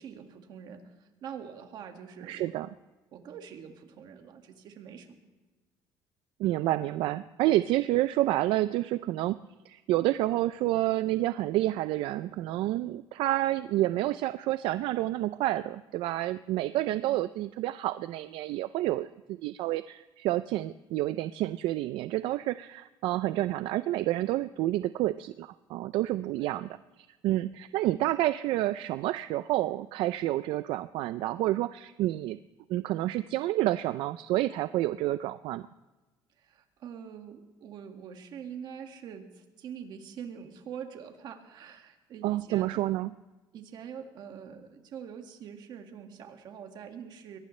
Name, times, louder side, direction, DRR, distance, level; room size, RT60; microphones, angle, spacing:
voice 1, 0.0-2.5 3.1-5.2 16.9-17.1 26.4-26.6 36.4-42.8 43.5-47.4, right 7 dB, 55° right, 5 dB, 1.9 m, -44 dB
voice 2, 2.2-2.7 6.4-9.4 9.7-26.7 27.2-32.4 32.7-35.7 42.2-43.1, right 15 dB, 80° right, 13 dB, 0.4 m, -29 dB
23.0 x 18.0 x 3.2 m, 1.2 s
cardioid pair, 150°, 9 cm